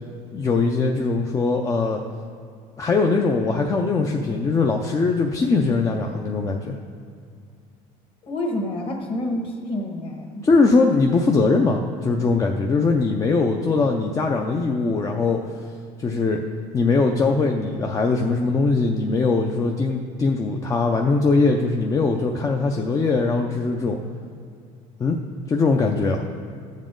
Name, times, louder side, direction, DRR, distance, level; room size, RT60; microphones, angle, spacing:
voice 1, 0.3-2.0 2.8-6.8 10.4-15.4 16.0-16.4 16.7-24.0 25.0-25.2 25.5-26.2, left 3 dB, 25° left, 1 dB, 0.5 m, -21 dB
voice 2, 8.2-10.4, left 1 dB, 40° left, 2 dB, 1.4 m, -28 dB
12.0 x 7.3 x 3.8 m, 2.3 s
cardioid pair, 135°, 14 cm